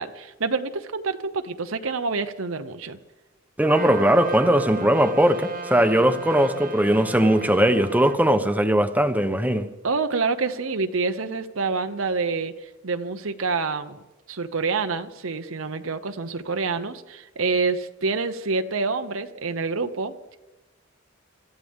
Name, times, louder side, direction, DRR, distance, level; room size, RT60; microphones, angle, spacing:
voice 1, 0.0-3.0 9.8-14.0 14.3-20.4, right 4 dB, 80° right, 0.9 m, -27 dB
voice 2, 3.6-9.7, right 1 dB, 10° right, 1.0 m, -19 dB
Trumpet, 3.6-8.2, right 2 dB, 45° right, 1.4 m, -34 dB
26.5 x 14.5 x 3.7 m
head